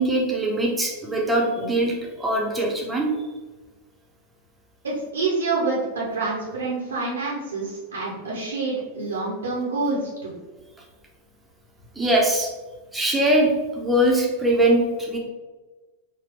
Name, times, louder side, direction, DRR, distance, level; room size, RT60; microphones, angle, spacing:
voice 1, 0.0-3.1 11.9-12.5 12.9-15.2, right 1 dB, 10° right, -2 dB, 0.8 m, -22 dB
voice 2, 4.8-10.3, right 3 dB, 70° right, -5 dB, 0.7 m, -27 dB
4.1 x 2.2 x 2.9 m, 1.3 s
figure-of-eight pair, 90°, 0 cm